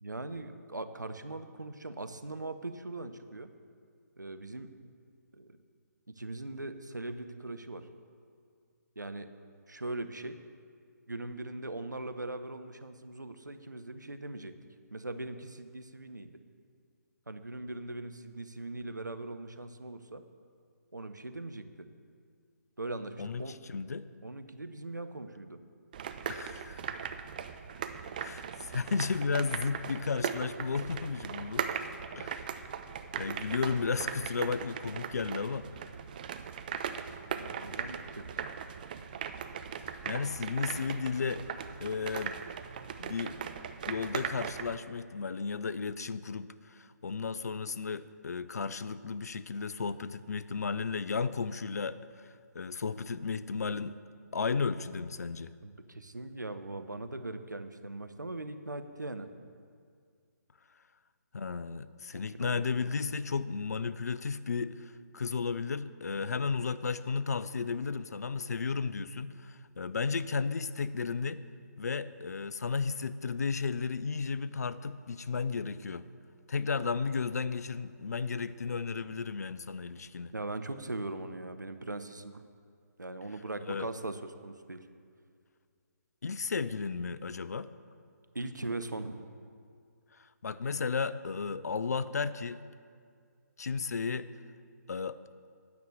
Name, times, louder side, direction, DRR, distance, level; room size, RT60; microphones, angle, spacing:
voice 1, 0.0-3.5 4.2-4.7 5.3-5.6 6.1-7.9 9.0-9.3 9.7-10.4 11.1-14.5 14.9-16.3 17.3-20.2 20.9-21.9 22.8-23.6 24.2-25.6 37.0-38.5 55.6-59.3 62.1-63.1 80.3-82.4 83.0-84.8 88.3-89.2, right 2 dB, 85° right, 9 dB, 0.7 m, -40 dB
voice 2, 23.2-24.1 26.3-27.0 28.2-31.7 32.2-32.5 33.2-35.8 40.1-41.5 41.8-42.4 43.0-43.4 43.9-54.0 54.3-55.5 61.3-71.4 71.8-76.1 76.5-80.3 83.7-83.9 86.2-87.7 90.1-92.6 93.6-94.3 94.9-95.2, left 5 dB, 60° left, 15 dB, 0.4 m, -34 dB
sound 1, 25.9-44.8, right 7 dB, 30° right, 0.4 m, -39 dB
9.4 x 6.1 x 6.9 m, 2.2 s
figure-of-eight pair, 140°, 10 cm